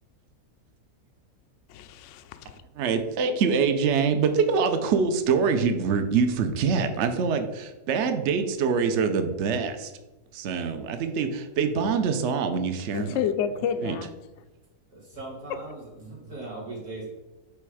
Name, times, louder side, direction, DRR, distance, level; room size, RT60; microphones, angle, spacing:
voice 1, 1.7-2.6 12.9-14.1 15.5-15.6, left 8 dB, 65° left, 0.7 m, -29 dB
voice 2, 2.8-9.9 10.3-13.2 13.8-13.9, right 5 dB, 55° right, 0.9 m, -24 dB
voice 3, 14.9-17.1, right 2 dB, 85° right, 3.3 m, -39 dB
8.5 x 3.4 x 4.9 m
omnidirectional pair, 1.7 m